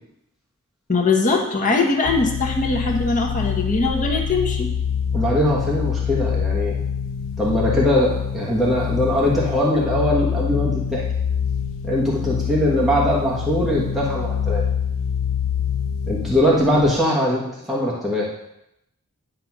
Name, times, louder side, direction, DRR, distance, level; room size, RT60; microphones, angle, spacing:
voice 1, 0.9-4.7, left 3 dB, 35° left, 0 dB, 1.2 m, -21 dB
sound 1, 2.0-16.9, left 7 dB, 60° left, 0.4 m, -25 dB
voice 2, 5.1-6.8 7.4-11.0 11.8-14.6 16.1-18.5, left 1 dB, ahead, -6 dB, 1.3 m, -21 dB
10.0 x 3.5 x 6.0 m, 0.83 s
head